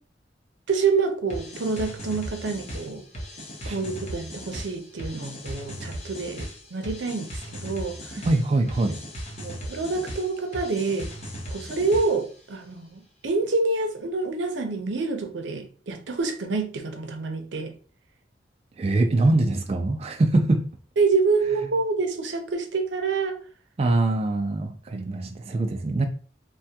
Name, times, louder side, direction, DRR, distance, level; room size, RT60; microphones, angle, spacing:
voice 1, 0.7-3.0 3.7-8.3 9.4-11.1 11.5-17.7 21.0-23.4 24.9-25.4, right 4 dB, 90° right, 0.6 m, -27 dB
sound 1, 1.3-12.4, equal, 40° left, 0.8 m, -37 dB
voice 2, 8.3-9.0 18.8-20.7 23.8-26.1, right 2 dB, 35° right, 0.3 m, -23 dB
3.4 x 2.2 x 2.7 m
head